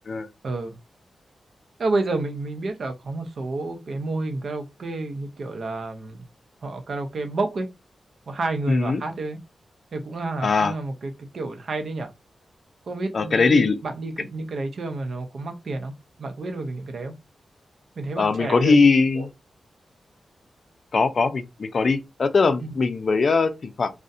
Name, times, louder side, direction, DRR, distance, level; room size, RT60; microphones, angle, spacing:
voice 1, 0.4-0.8 1.8-6.2 6.6-7.7 8.3-9.4 9.9-12.1 12.9-17.1 18.0-18.8 19.1-19.3 22.6-22.7, right 2 dB, 60° right, 0.5 m, -30 dB
voice 2, 8.7-9.0 10.4-10.7 13.1-13.8 18.2-19.3 20.9-23.9, left 4 dB, 55° left, 0.4 m, -20 dB
2.4 x 2.1 x 2.6 m
wide cardioid pair, 110°, 0 cm